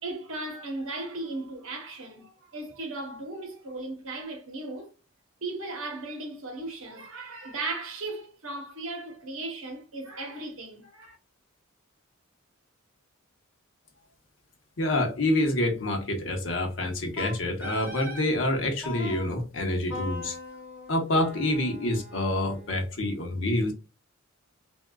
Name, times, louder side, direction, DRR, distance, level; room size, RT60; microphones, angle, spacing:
voice 1, 0.0-4.9 5.4-11.2, right 2 dB, 80° right, 1.0 m, -36 dB
voice 2, 14.8-20.4 20.9-23.7, left 1 dB, 65° left, 0.9 m, -27 dB
Wind instrument woodwind instrument, 17.2-18.3 18.8-19.3 19.9-22.9, left 1 dB, 10° right, 1.0 m, -40 dB
3.5 x 2.3 x 2.3 m
head